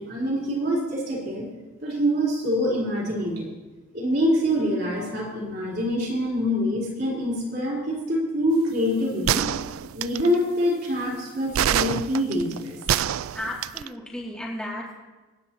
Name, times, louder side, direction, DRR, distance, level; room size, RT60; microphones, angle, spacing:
voice 1, 0.0-1.5 1.8-3.5 3.9-9.4 9.9-12.8, equal, 45° right, -4 dB, 3.9 m, -25 dB
sound 1, 9.3-10.3 11.5-13.9, right 10 dB, 70° right, 0.3 m, -25 dB
voice 2, 13.3-15.0, left 1 dB, 5° left, -5 dB, 2.6 m, -34 dB
25.0 x 9.5 x 3.0 m, 1.2 s
head